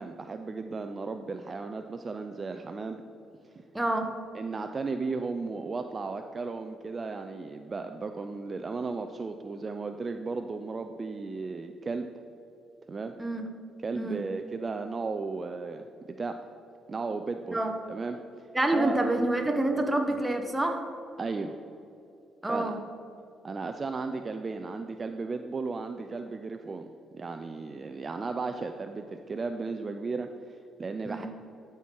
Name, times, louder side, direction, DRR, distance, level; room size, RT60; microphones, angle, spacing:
voice 1, 0.0-3.0 3.4-3.5 4.3-12.1 12.9-13.1 13.8-16.4 16.9-17.6 17.9-19.0 21.2-21.6 22.5-22.8 23.4-31.3, right 4 dB, 35° right, 7 dB, 0.4 m, -35 dB
voice 2, 3.7-4.2 13.2-13.5 13.9-14.2 17.5-17.7 18.5-20.8 22.4-22.8 31.0-31.3, right 1 dB, 10° right, 4 dB, 0.9 m, -27 dB
12.0 x 4.5 x 4.5 m, 2.7 s
cardioid pair, 90°, 0 cm